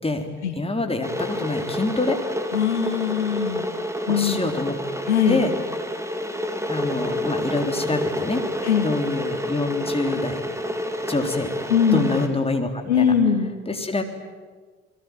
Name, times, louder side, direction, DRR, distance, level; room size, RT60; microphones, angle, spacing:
voice 1, 0.5-2.2 4.1-4.8 5.3-5.5 6.7-8.4 8.8-10.4 11.1-11.5 11.9-13.1 13.7-14.0, left 3 dB, 15° left, 5 dB, 3.9 m, -26 dB
Water / Boiling, 1.0-12.3, equal, 10° right, 3.8 m, -29 dB
voice 2, 2.5-3.6 4.1-4.4 5.1-5.5 8.6-8.9 11.7-12.1 12.9-13.5, left 7 dB, 80° left, 7 dB, 1.7 m, -21 dB
29.5 x 22.0 x 9.3 m, 1.4 s
figure-of-eight pair, 45°, 34 cm